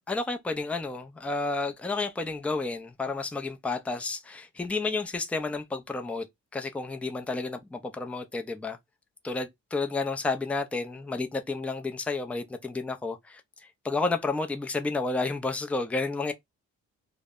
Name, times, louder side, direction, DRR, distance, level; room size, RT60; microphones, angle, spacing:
voice 1, 0.1-6.3 6.5-8.8 9.2-13.4 13.8-16.3, left 3 dB, 5° left, 0.4 m, -31 dB
2.0 x 2.0 x 3.5 m
cardioid pair, 90°, 30 cm